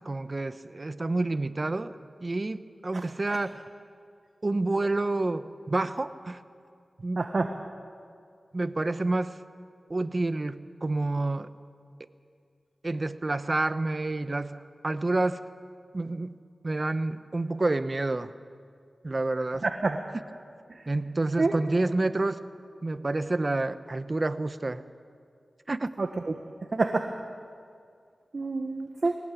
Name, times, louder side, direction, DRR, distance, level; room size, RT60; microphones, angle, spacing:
voice 1, 0.0-3.6 4.4-6.4 7.0-7.2 8.5-9.4 9.9-11.5 12.8-15.4 15.9-16.3 16.6-18.3 19.0-19.6 20.9-22.4 22.8-24.8 25.7-25.9, right 2 dB, 45° right, 12 dB, 1.0 m, -29 dB
voice 2, 7.2-7.5 19.6-20.0 20.7-20.8 21.4-21.6 26.0-26.1 26.7-27.1 28.3-29.2, right 3 dB, 60° right, 5 dB, 1.2 m, -27 dB
21.0 x 18.0 x 8.4 m, 2.2 s
cardioid pair, 45°, 0 cm